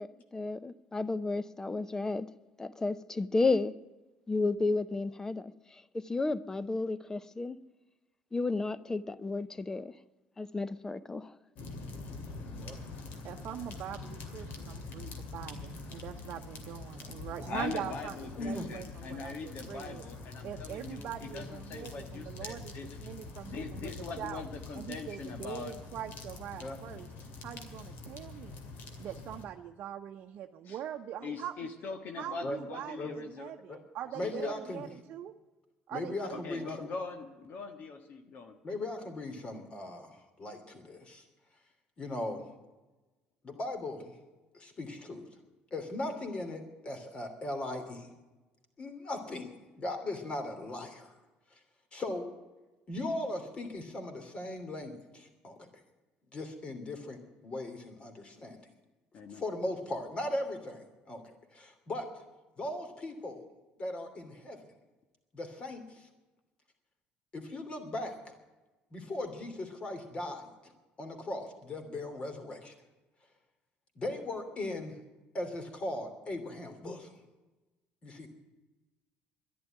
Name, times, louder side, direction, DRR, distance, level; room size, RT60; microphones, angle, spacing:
voice 1, 0.0-2.3 2.6-3.7 4.3-7.6 8.3-9.9 10.4-11.3, left 3 dB, 15° left, 0.6 m, -32 dB
sound 1, 11.5-29.4, left 3 dB, 70° left, 2.4 m, -45 dB
voice 2, 13.2-18.2 18.4-20.1 20.4-22.7 23.0-24.4 24.7-27.1 27.4-28.6 29.0-31.7 32.2-35.3 35.9-36.9, right 10 dB, 60° right, 0.8 m, -42 dB
voice 3, 17.5-23.0 23.4-25.7 30.6-30.8 31.2-33.5 34.2-34.6 36.4-38.6 59.1-59.4, left 4 dB, 55° left, 1.5 m, -42 dB
voice 4, 18.4-18.7 26.6-26.8 32.4-32.6 33.0-33.2 33.7-33.8 34.1-34.8 35.9-36.9 38.6-41.2 42.0-42.4 43.4-44.1 44.5-45.3 45.7-48.1 48.8-49.5 49.8-51.1 51.5-51.6 51.9-52.3 52.9-55.8 56.3-58.6 59.3-62.1 62.6-63.4 63.8-64.6 65.3-66.1 67.3-68.3 68.9-70.5 71.0-72.7 73.9-75.0 75.3-77.2 78.0-78.3, left 2 dB, 35° left, 3.0 m, -38 dB
11.5 x 11.0 x 10.0 m
cardioid pair, 105°, 3 cm